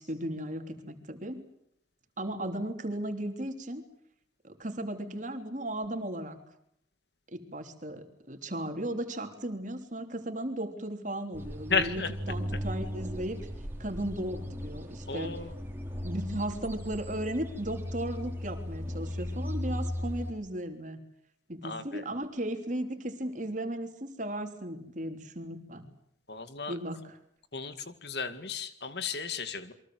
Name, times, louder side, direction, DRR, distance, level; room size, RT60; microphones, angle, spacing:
voice 1, 0.0-1.4 2.2-3.8 4.4-6.4 7.3-13.4 13.8-15.4 16.0-21.0 21.5-25.9 26.7-27.2, right 1 dB, 40° right, 5 dB, 3.4 m, -36 dB
sound 1, 11.3-20.3, equal, 10° right, 3.8 m, -37 dB
voice 2, 11.7-12.1 15.1-15.6 21.6-22.0 26.3-26.8 27.5-29.7, left 5 dB, 60° left, 10 dB, 2.1 m, -34 dB
28.5 x 23.5 x 7.9 m, 0.72 s
head